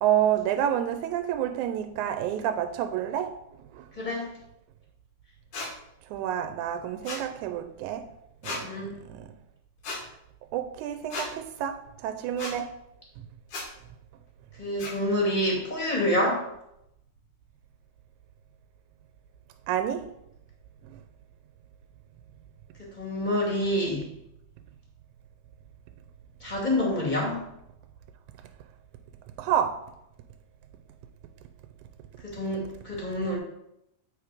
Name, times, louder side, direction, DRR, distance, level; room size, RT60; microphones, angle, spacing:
voice 1, 0.0-3.4 3.7-3.9 6.1-8.1 8.4-8.6 9.0-9.3 10.5-12.7 19.7-20.1 20.9-21.0 29.4-29.8, right 10 dB, 85° right, 7 dB, 2.0 m, -29 dB
voice 2, 4.0-4.3 8.6-8.9 14.6-16.4 23.0-24.0 26.4-27.4 32.2-33.4, left 1 dB, 15° left, -2 dB, 2.1 m, -27 dB
sound 1, 5.5-5.7 7.0-7.2 8.4-8.6 9.8-10.0 11.1-11.3 12.4-12.5 13.5-13.7 14.8-14.9, left 3 dB, 90° left, 3.6 m, -34 dB
8.0 x 4.8 x 5.0 m, 0.80 s
omnidirectional pair, 3.4 m